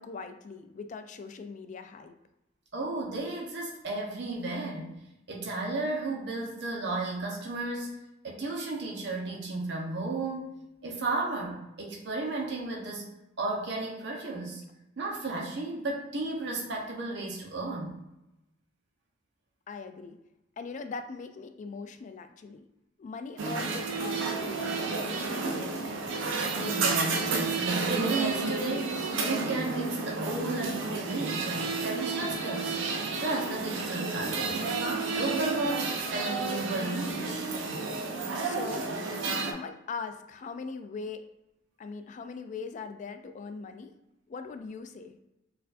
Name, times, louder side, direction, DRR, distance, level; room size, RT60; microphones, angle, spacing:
voice 1, 0.0-2.1 19.7-20.2 20.6-22.7 23.0-25.5 38.4-38.8 39.3-41.2 41.8-43.9 44.3-45.1, left 4 dB, 40° left, 8 dB, 0.3 m, -40 dB
voice 2, 2.7-7.9 8.2-10.6 10.8-13.1 13.4-14.6 15.0-18.0 26.6-29.0 29.2-32.8 33.2-34.8 35.1-37.5, right 2 dB, 65° right, -2 dB, 0.8 m, -33 dB
sound 1, 23.4-39.5, right 4 dB, 80° right, 0.4 m, -31 dB
4.4 x 2.5 x 2.5 m, 0.92 s
head